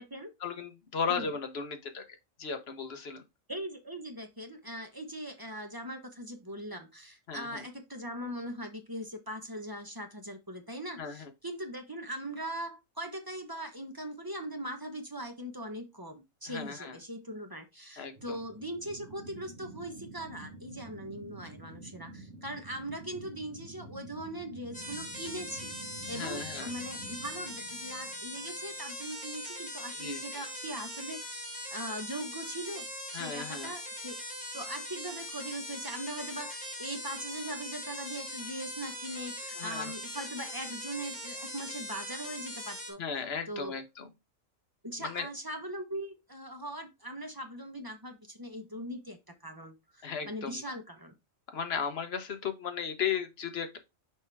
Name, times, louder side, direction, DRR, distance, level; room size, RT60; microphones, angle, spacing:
voice 1, 0.4-3.2 7.3-7.6 11.0-11.3 16.5-17.0 18.0-18.4 26.1-26.7 30.0-30.4 33.1-33.7 39.6-39.9 43.0-44.1 45.0-45.3 50.0-50.6 51.5-53.8, left 6 dB, 55° left, 1.2 m, -36 dB
voice 2, 3.5-31.4 31.7-32.8 33.1-34.2 34.5-43.0 43.5-43.7 44.8-51.1, right 1 dB, 20° right, 0.9 m, -40 dB
sound 1, 18.1-29.1, right 2 dB, 65° right, 1.8 m, -49 dB
sound 2, 24.7-42.9, equal, 5° left, 1.9 m, -41 dB
6.4 x 4.6 x 3.4 m
omnidirectional pair, 1.4 m